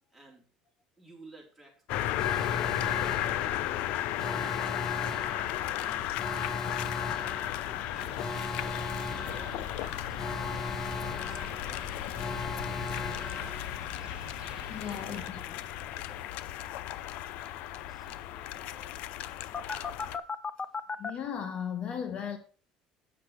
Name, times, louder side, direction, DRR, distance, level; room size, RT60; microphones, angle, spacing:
voice 1, 0.1-0.4 1.0-5.4 5.8-6.1 7.6-8.8 9.3-13.4 14.8-16.4 17.7-19.7, right 2 dB, ahead, 4.0 m, -55 dB
sound 1, 1.9-20.2, left 13 dB, 70° left, 0.5 m, -34 dB
Alarm, 2.2-14.1 19.5-21.1, left 3 dB, 20° left, 0.8 m, -38 dB
sound 2, 7.9-15.3, right 7 dB, 40° right, 1.3 m, -50 dB
voice 2, 14.7-15.4 20.0-20.2 20.8-22.4, left 8 dB, 45° left, 1.4 m, -37 dB
8.5 x 6.4 x 6.0 m
cardioid pair, 120°, 2 cm